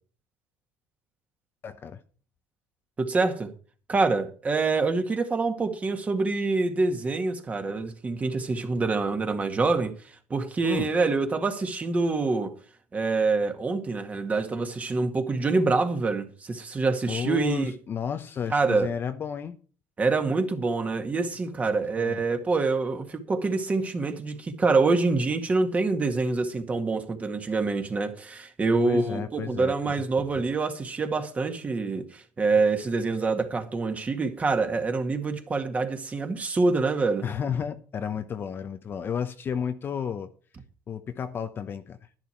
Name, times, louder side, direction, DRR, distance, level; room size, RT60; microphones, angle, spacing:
voice 1, 1.6-2.0 10.6-10.9 17.1-19.6 21.7-22.2 28.8-29.7 37.2-40.3 40.9-42.0, left 7 dB, 35° left, 0.9 m, -32 dB
voice 2, 3.0-3.5 3.9-12.5 12.9-17.7 18.5-18.9 20.0-37.2, right 3 dB, 25° right, 1.9 m, -26 dB
11.0 x 10.5 x 4.5 m
supercardioid pair, 110°, 6 cm